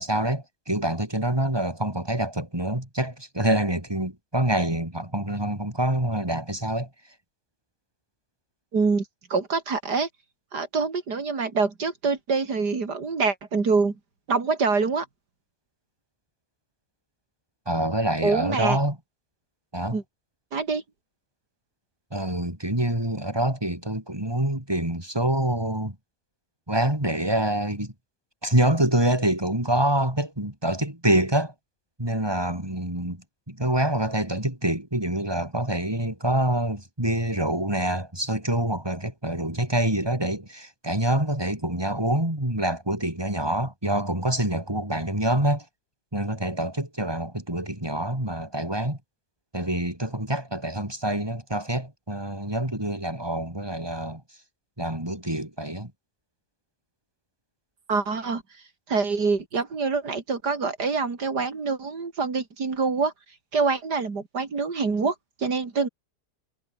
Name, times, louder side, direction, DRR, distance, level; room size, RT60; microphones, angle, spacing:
voice 1, 0.0-6.9 17.7-19.0 19.7-20.0 22.1-25.9 26.7-27.9 28.4-31.5 32.0-45.6 46.1-49.0 49.5-54.2 54.8-55.9, right 1 dB, 15° right, 5.0 m, -26 dB
voice 2, 8.7-9.0 9.3-10.1 10.5-13.9 14.3-15.1 18.2-18.8 19.9-20.0 20.5-20.8 57.9-58.4 58.9-63.1 63.5-65.9, right 4 dB, 75° right, 3.5 m, -25 dB
omnidirectional pair, 1.8 m